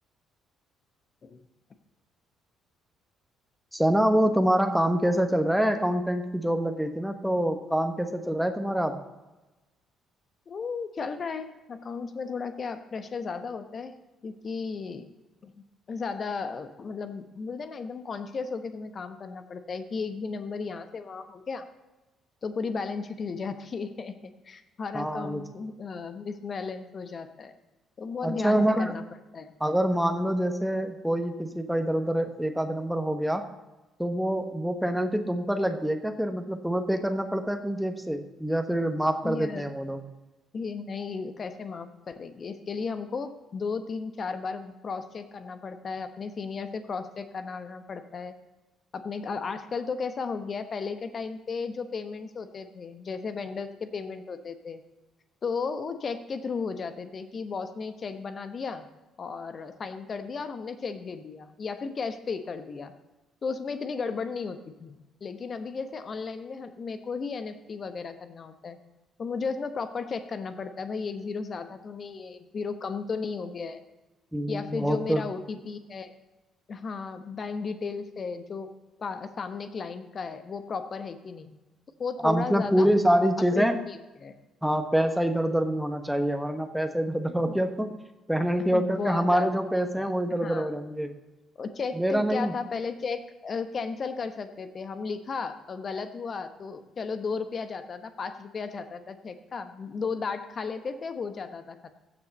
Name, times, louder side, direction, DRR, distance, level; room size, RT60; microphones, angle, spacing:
voice 1, 3.7-9.0 24.9-25.4 28.2-28.9 29.6-33.5 34.0-40.0 74.3-75.2 82.2-83.8 84.6-87.9 88.3-91.1 92.0-92.5, equal, ahead, 6 dB, 1.2 m, -26 dB
voice 2, 10.5-13.9 14.2-15.1 15.4-21.7 22.4-27.5 28.0-29.0 29.3-29.5 39.2-39.6 40.5-48.3 48.9-54.8 55.4-58.9 59.2-62.9 63.4-68.8 69.2-73.8 74.5-76.1 76.7-78.7 79.0-81.6 82.0-82.9 83.5-84.3 87.4-87.6 88.7-89.6 90.0-90.1 90.4-90.7 91.6-102.0, left 5 dB, 40° left, 9 dB, 1.0 m, -35 dB
15.5 x 6.7 x 4.1 m, 1.1 s
figure-of-eight pair, 45°, 0 cm